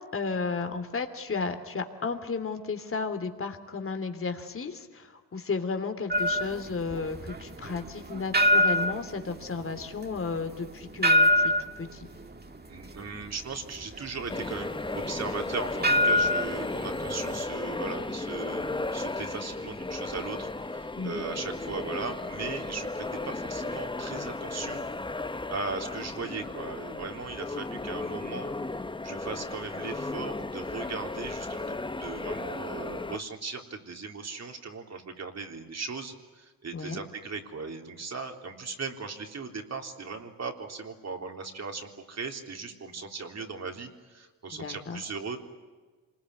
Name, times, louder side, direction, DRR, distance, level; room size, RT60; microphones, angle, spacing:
voice 1, 0.1-12.1 21.0-21.2 36.7-37.0 44.5-45.0, left 4 dB, 40° left, 7 dB, 3.0 m, -33 dB
sound 1, 6.1-17.4, left 1 dB, 30° right, 2.3 m, -26 dB
voice 2, 12.7-24.9 25.5-28.6 29.0-45.4, right 4 dB, 50° right, 4 dB, 3.7 m, -38 dB
sound 2, 14.3-33.2, left 2 dB, 15° left, 1.0 m, -35 dB
27.5 x 21.0 x 9.7 m, 1.4 s
cardioid pair, 95°, 35 cm